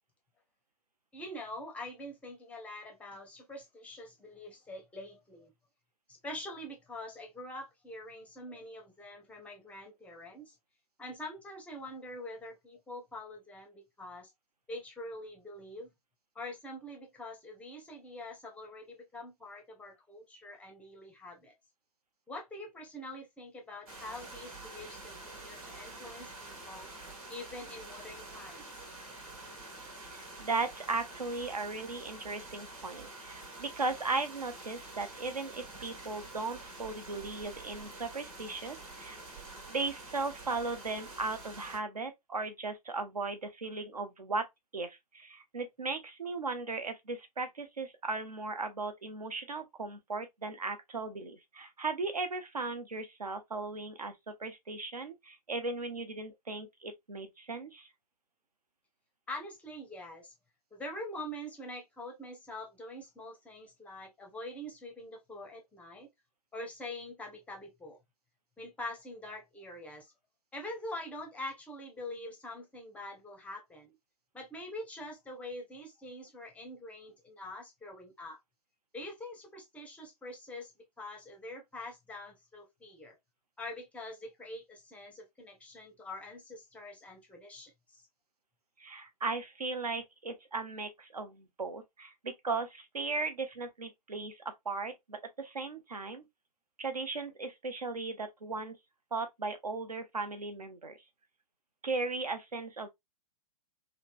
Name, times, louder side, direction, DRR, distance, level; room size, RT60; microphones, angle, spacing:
voice 1, 1.1-5.5 6.1-10.6 11.0-14.3 14.7-15.9 16.4-21.5 22.3-26.9 27.3-28.7 59.3-60.3 60.7-66.1 66.5-68.0 68.6-70.1 70.5-73.9 74.3-78.4 78.9-80.7 81.0-83.2 83.6-88.0, left 1 dB, 5° left, 0.5 m, -45 dB
sound 1, 23.9-41.8, right 2 dB, 65° right, 1.3 m, -47 dB
voice 2, 30.1-39.2 39.7-44.5 44.7-57.9 88.8-96.2 96.8-98.8 99.1-101.0 101.8-102.9, right 3 dB, 80° right, 0.6 m, -37 dB
3.1 x 2.0 x 2.5 m
figure-of-eight pair, 110°, 20 cm